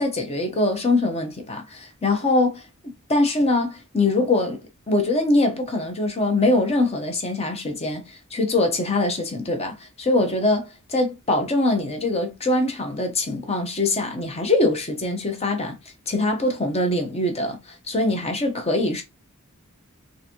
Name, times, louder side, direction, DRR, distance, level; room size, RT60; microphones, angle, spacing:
voice 1, 0.0-4.6 4.9-8.0 8.3-15.8 16.1-19.0, left 2 dB, 30° left, 0.8 m, -23 dB
3.8 x 2.6 x 2.9 m
head